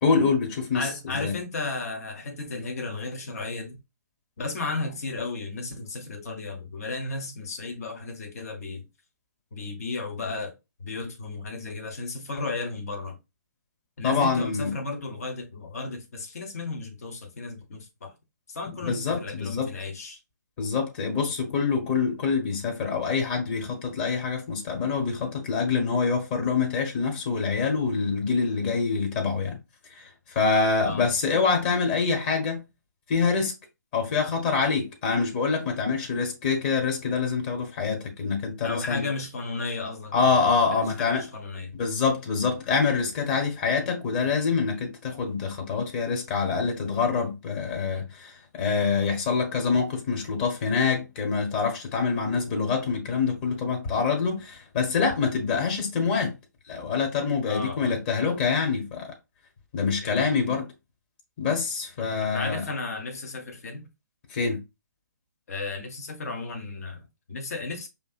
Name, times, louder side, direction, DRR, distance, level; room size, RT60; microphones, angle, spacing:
voice 1, 0.0-1.3 14.0-14.7 18.8-19.7 20.6-29.6 29.9-32.6 33.1-33.5 33.9-39.1 40.1-41.2 41.7-56.3 56.7-59.1 59.7-60.7 61.4-62.6 64.3-64.6, left 5 dB, 30° left, 1.3 m, -25 dB
voice 2, 0.7-3.8 4.4-8.9 9.5-10.5 10.8-13.2 14.0-18.1 18.5-20.2 30.8-31.1 38.6-40.5 40.7-41.8 57.5-58.0 60.0-60.3 62.0-63.9 65.5-67.9, left 3 dB, 55° left, 1.2 m, -34 dB
5.1 x 2.8 x 2.4 m
figure-of-eight pair, 135°, 10 cm